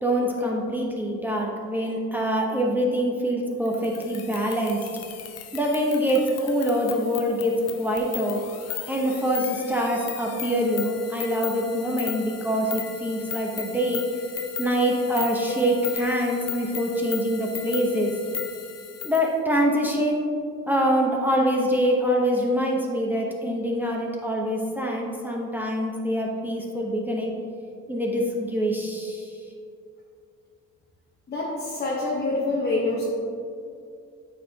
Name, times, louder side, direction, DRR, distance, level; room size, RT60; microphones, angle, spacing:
voice 1, 0.0-4.9 5.5-8.5 8.9-14.2 14.6-18.1 19.0-20.3 20.7-27.3 27.9-29.4, equal, 5° right, -2 dB, 0.9 m, -25 dB
sound 1, 3.7-19.3, left 10 dB, 55° left, 0.6 m, -37 dB
voice 2, 31.3-33.0, left 2 dB, 35° left, -4 dB, 1.1 m, -26 dB
8.9 x 4.9 x 2.8 m, 2.4 s
cardioid pair, 90°, 30 cm